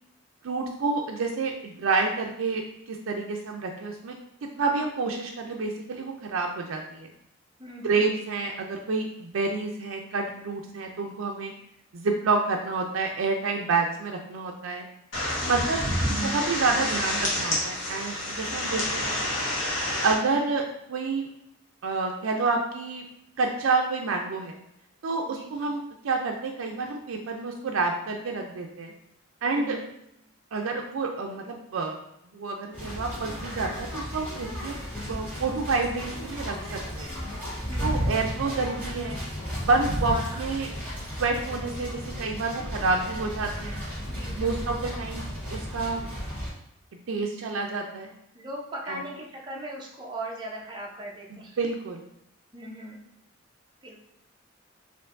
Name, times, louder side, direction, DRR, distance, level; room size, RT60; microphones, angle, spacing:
voice 1, 0.4-2.6 2.9-4.1 4.4-7.1 7.8-11.5 11.9-14.8 15.5-15.8 16.1-19.4 20.0-20.6 20.9-21.3 21.8-23.0 23.4-24.6 25.0-28.9 29.4-29.8 30.5-32.0 32.3-34.7 35.1-37.1 37.8-39.2 39.6-40.7 41.2-43.8 44.4-45.2 45.5-46.1 47.1-48.1 48.9-49.0 51.3-52.0, right 3 dB, 80° right, 2 dB, 0.4 m, -28 dB
voice 2, 7.6-8.1 15.4-15.9 20.1-20.5 25.3-25.7 29.4-29.9 37.7-38.2 40.1-40.4 44.0-44.7 48.3-51.6 52.5-53.0 53.8-54.0, right 1 dB, 20° right, -2 dB, 0.6 m, -39 dB
sound 1, 15.1-20.1, left 1 dB, 65° left, 1.1 m, -28 dB
sound 2, 32.7-46.5, equal, 10° left, 1.3 m, -34 dB
4.4 x 2.6 x 2.5 m, 0.80 s
head